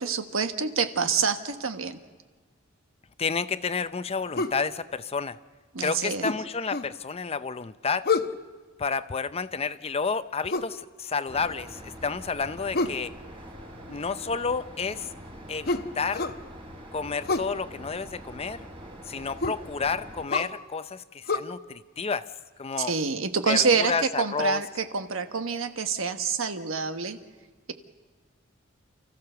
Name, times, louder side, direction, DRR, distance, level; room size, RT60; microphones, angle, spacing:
voice 1, 0.0-2.0 5.7-6.3 22.8-27.2, right 5 dB, 80° right, 8 dB, 1.3 m, -27 dB
voice 2, 3.2-5.4 5.8-8.1 8.8-13.1 13.9-15.1 15.5-16.3 16.9-18.6 19.1-22.2 22.6-22.9 23.5-24.6, left 5 dB, 30° left, 13 dB, 0.6 m, -30 dB
sound 1, 4.4-4.6 6.2-6.9 8.0-8.4 10.5-10.8 12.7-13.0 15.7-16.4 17.2-17.5 19.4-19.6 20.3-20.5 21.3-21.4, left 3 dB, 50° left, 0.9 m, -28 dB
sound 2, 11.3-20.3, equal, 25° right, 3.2 m, -44 dB
29.0 x 14.5 x 6.8 m, 1.4 s
head